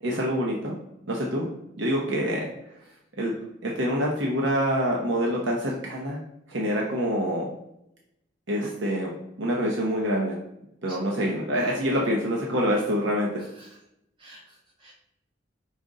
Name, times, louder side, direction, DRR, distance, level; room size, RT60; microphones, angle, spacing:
voice 1, 0.0-0.7 1.1-1.5 1.8-2.5 3.2-3.3 3.6-6.2 6.5-7.5 8.5-10.4 10.8-13.4, equal, 70° right, -2 dB, 0.7 m, -26 dB
voice 2, 13.4-13.8 14.2-14.9, right 1 dB, 25° right, -4 dB, 1.0 m, -50 dB
5.1 x 2.5 x 3.8 m, 0.83 s
head